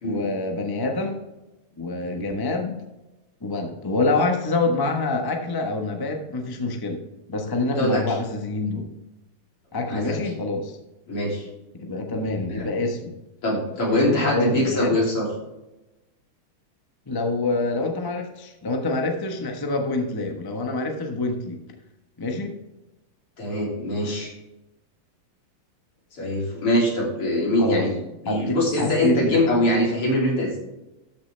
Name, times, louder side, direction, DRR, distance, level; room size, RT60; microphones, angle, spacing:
voice 1, 0.0-1.2 1.8-2.8 3.4-7.0 7.3-8.9 9.7-10.8 11.7-13.1 13.9-15.1 17.1-21.6 22.2-22.6 27.6-27.9 28.2-29.4, left 2 dB, 15° left, 3 dB, 0.7 m, -26 dB
voice 2, 2.0-2.4 7.8-8.2 9.9-10.2 11.1-11.5 12.5-12.7 13.4-15.3 23.4-24.3 26.1-28.0 28.2-30.6, left 1 dB, 80° left, -3 dB, 4.1 m, -23 dB
13.0 x 6.6 x 3.3 m, 1.0 s
omnidirectional pair, 2.4 m